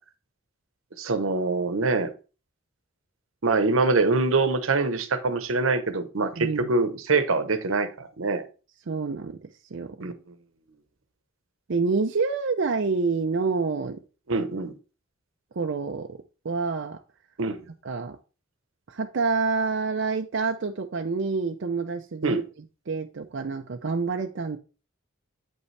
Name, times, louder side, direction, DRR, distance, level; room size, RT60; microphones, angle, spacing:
voice 1, 1.0-2.1 3.4-8.4 10.0-10.1 14.3-14.7 17.4-17.6 22.2-22.4, right 3 dB, 90° right, 0.9 m, -24 dB
voice 2, 6.3-6.7 8.9-10.0 11.7-14.0 15.5-16.2 16.4-17.0 17.8-18.2 18.9-22.4 22.9-24.6, right 4 dB, 65° right, 0.5 m, -27 dB
8.3 x 5.4 x 3.3 m
head